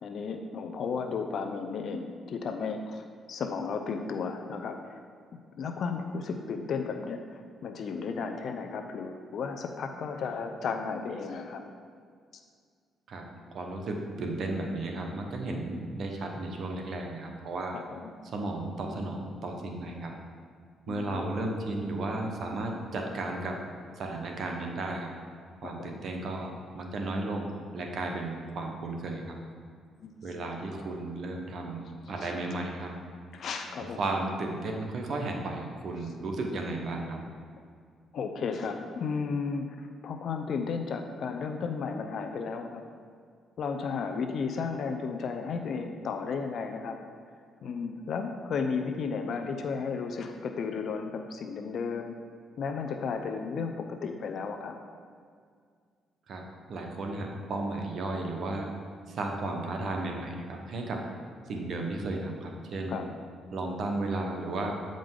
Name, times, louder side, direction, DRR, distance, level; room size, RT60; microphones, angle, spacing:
voice 1, 0.0-5.0 5.6-11.6 17.7-18.1 20.9-21.3 25.6-26.0 30.0-30.1 32.2-32.3 33.3-34.0 38.1-42.8 43.6-47.0 47.6-52.1 52.6-54.8 62.9-63.1, left 5 dB, 65° left, 5 dB, 0.5 m, -34 dB
voice 2, 13.1-17.8 18.2-20.1 20.9-23.6 23.9-25.1 25.6-29.4 30.2-31.8 32.1-33.0 34.0-37.2 56.3-58.8 59.1-61.1 61.5-63.0 63.5-64.7, right 2 dB, 60° right, 2 dB, 1.0 m, -34 dB
8.8 x 5.1 x 3.8 m, 2.1 s
cardioid pair, 90°, 0 cm